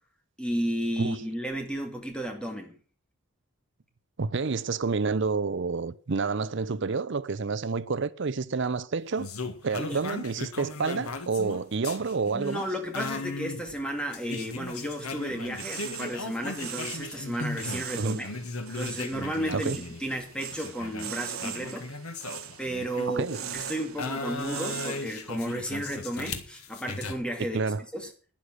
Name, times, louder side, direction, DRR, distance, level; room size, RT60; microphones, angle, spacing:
voice 1, 0.4-2.7 9.8-10.0 12.3-18.3 18.7-21.9 22.6-23.3 23.5-27.6 27.9-28.1, equal, 5° left, 2.1 m, -33 dB
voice 2, 4.2-9.3 9.6-12.6 18.0-18.3 19.5-19.8 23.1-23.4 27.5-27.8, right 4 dB, 55° right, 0.6 m, -29 dB
sound 1, 9.2-17.9 18.2-23.5 24.0-27.1, left 3 dB, 85° left, 1.7 m, -37 dB
sound 2, 14.7-25.1, right 9 dB, 70° right, 1.1 m, -41 dB
11.5 x 9.9 x 6.2 m
head